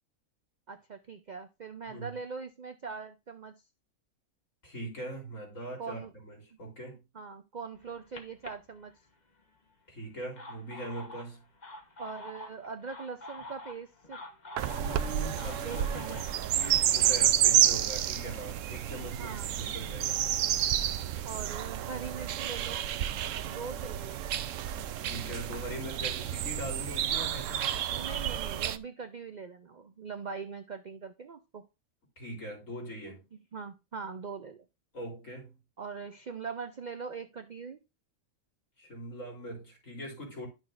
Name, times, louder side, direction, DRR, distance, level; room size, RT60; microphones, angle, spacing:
voice 1, 0.7-3.5 5.8-6.1 6.5-6.6 7.1-8.9 12.0-14.2 15.6-16.2 19.2-19.6 21.2-22.8 23.4-24.2 26.2-26.3 27.8-31.6 33.5-34.6 35.8-37.8, right 5 dB, 55° right, 0.5 m, -41 dB
voice 2, 1.9-2.2 4.6-7.0 9.9-11.4 14.8-16.2 16.6-20.2 25.0-27.7 32.2-33.2 34.9-35.6 38.8-40.5, right 1 dB, 65° left, 4.0 m, -41 dB
sound 1, 7.8-9.4 10.1-17.3, left 2 dB, 35° left, 1.1 m, -47 dB
sound 2, 14.6-28.8, right 11 dB, 70° right, 0.9 m, -30 dB
11.0 x 6.4 x 2.5 m
omnidirectional pair, 1.4 m